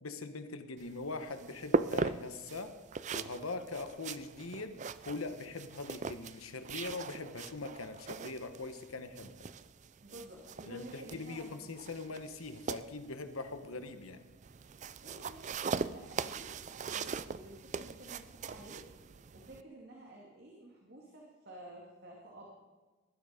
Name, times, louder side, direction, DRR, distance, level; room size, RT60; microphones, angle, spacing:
voice 1, 0.0-2.8 3.1-4.8 5.1-9.3 10.7-14.2, left 3 dB, 85° left, 9 dB, 1.3 m, -42 dB
sound 1, 0.8-19.6, right 5 dB, 35° right, 0.4 m, -40 dB
voice 2, 10.0-11.6 15.0-18.9 19.3-22.5, right 1 dB, 50° right, -2 dB, 2.5 m, -52 dB
19.0 x 12.5 x 5.2 m, 1.2 s
head